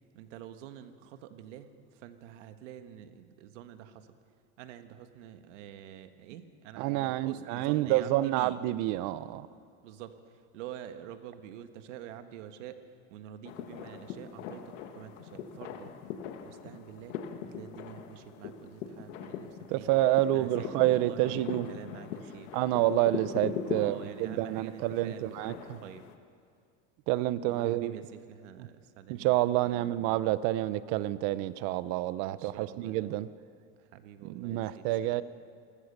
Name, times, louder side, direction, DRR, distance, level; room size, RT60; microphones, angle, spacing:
voice 1, 0.1-4.2 4.6-8.6 9.8-15.9 16.4-19.9 20.3-22.6 23.7-26.1 27.4-29.4 29.6-30.2 32.3-33.1 33.8-35.2, right 10 dB, 85° right, 9 dB, 1.5 m, -47 dB
voice 2, 6.8-9.5 19.7-21.7 22.5-25.8 27.1-27.9 29.1-33.3 34.2-35.2, right 15 dB, 65° right, 16 dB, 0.9 m, -28 dB
sound 1, 13.4-26.2, left 8 dB, 85° left, 1.6 m, -41 dB
27.5 x 14.5 x 6.7 m, 2.3 s
supercardioid pair, 130°, 36 cm